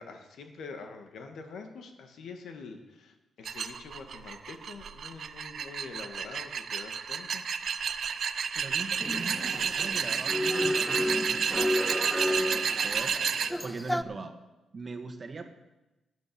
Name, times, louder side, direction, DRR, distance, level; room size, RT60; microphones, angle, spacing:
voice 1, 0.0-7.4, left 4 dB, 70° left, 5 dB, 1.9 m, -45 dB
sound 1, 3.5-13.5, right 7 dB, 55° right, 0.7 m, -31 dB
voice 2, 8.5-14.4 14.7-15.4, right 4 dB, 35° right, 6 dB, 1.6 m, -41 dB
sound 2, 9.0-14.0, left 1 dB, 5° left, 0.5 m, -32 dB
12.5 x 9.3 x 7.1 m, 1.0 s
cardioid pair, 110°, 0 cm